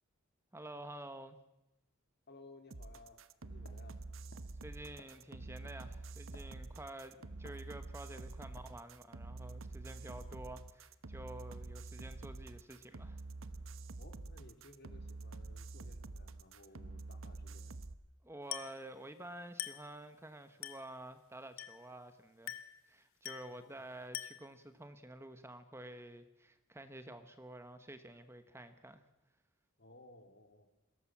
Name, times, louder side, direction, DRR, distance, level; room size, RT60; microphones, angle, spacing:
voice 1, 0.5-1.4 4.6-13.2 18.2-22.5 22.9-29.0, right 1 dB, 10° right, 9 dB, 1.1 m, -50 dB
voice 2, 2.3-4.0 14.0-17.7 23.5-23.8 29.8-30.7, left 2 dB, 50° left, 6 dB, 2.8 m, -59 dB
sound 1, 2.7-17.9, right 3 dB, 70° right, 1.0 m, -47 dB
sound 2, 3.7-6.9 7.4-8.1 8.6-8.8, left 2 dB, 75° left, 2.4 m, -60 dB
Glass, 18.5-18.9 19.6-19.9 20.6-20.9 21.6-21.9 22.5-22.8 23.2-23.6 24.1-24.6, left 12 dB, 90° left, 1.8 m, -44 dB
21.5 x 17.5 x 7.4 m, 0.95 s
head